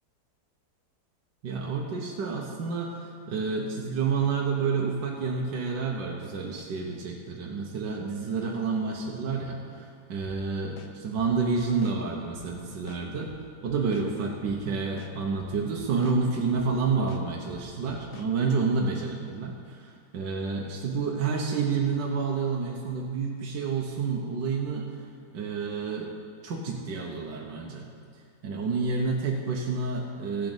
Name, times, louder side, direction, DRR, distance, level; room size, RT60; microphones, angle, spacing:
voice 1, 1.4-13.3 13.6-24.9 25.3-26.1 26.4-27.9 28.4-30.5, right 4 dB, 65° right, -1 dB, 1.6 m, -29 dB
sound 1, 10.2-10.4 10.8-12.0 12.3-12.5 12.9-14.1 14.4-14.6 15.0-16.2 16.5-16.7 17.1-18.3, left 8 dB, 65° left, 0.6 m, -46 dB
14.5 x 5.2 x 7.9 m, 2.3 s
omnidirectional pair, 2.1 m